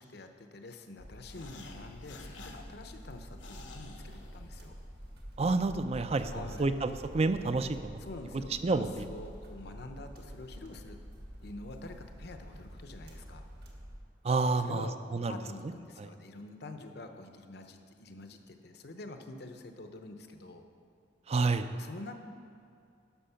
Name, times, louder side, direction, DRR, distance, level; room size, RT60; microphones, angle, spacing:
voice 1, 0.0-4.7 6.2-6.7 8.0-11.0 11.4-13.5 14.6-15.0 15.3-20.6 21.7-22.1, left 2 dB, 60° left, 6 dB, 0.8 m, -46 dB
sound 1, 1.0-14.0, equal, 60° right, 1.6 m, -48 dB
sound 2, 1.2-4.9, left 3 dB, 90° left, 1.0 m, -52 dB
voice 2, 5.4-8.0 8.6-9.0 14.2-15.4 15.6-15.7 16.0-16.1 21.3-21.7, right 3 dB, 35° right, 10 dB, 0.4 m, -29 dB
11.5 x 6.3 x 5.7 m, 2.4 s
head